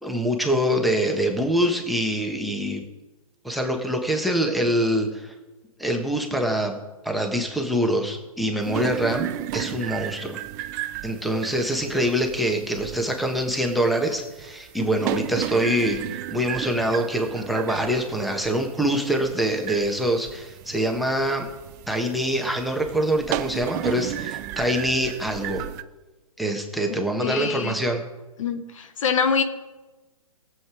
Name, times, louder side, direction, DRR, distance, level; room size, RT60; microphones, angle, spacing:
voice 1, 0.0-2.8 3.4-5.3 5.8-6.8 7.0-10.4 11.0-21.5 21.9-25.7 26.4-28.0, right 1 dB, ahead, 4 dB, 1.3 m, -24 dB
sound 1, 8.6-25.8, right 13 dB, 30° right, 0.5 m, -34 dB
voice 2, 27.2-27.7 28.4-29.4, left 6 dB, 60° left, 9 dB, 1.2 m, -24 dB
17.5 x 7.8 x 4.9 m, 1.2 s
figure-of-eight pair, 130°, 19 cm